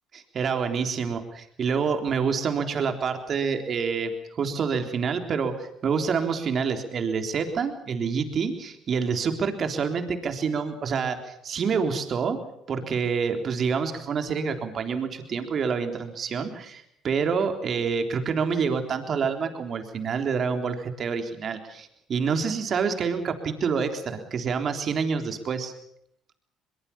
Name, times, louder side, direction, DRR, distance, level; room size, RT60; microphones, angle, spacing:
voice 1, 0.1-12.4 12.7-25.7, right 5 dB, 50° right, 6 dB, 3.7 m, -27 dB
23.0 x 22.0 x 7.1 m, 0.74 s
supercardioid pair, 80°, 0 cm